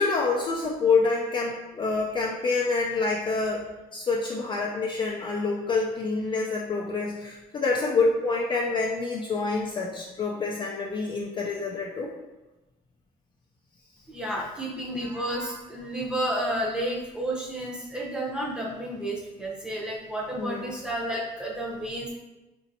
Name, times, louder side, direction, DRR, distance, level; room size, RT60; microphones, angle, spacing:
voice 1, 0.0-3.7 3.9-12.1 20.4-20.7, left 4 dB, 30° left, -3 dB, 0.4 m, -27 dB
voice 2, 14.1-22.1, right 1 dB, 5° right, -4 dB, 0.8 m, -31 dB
4.0 x 2.6 x 2.7 m, 1.1 s
cardioid pair, 110°, 17 cm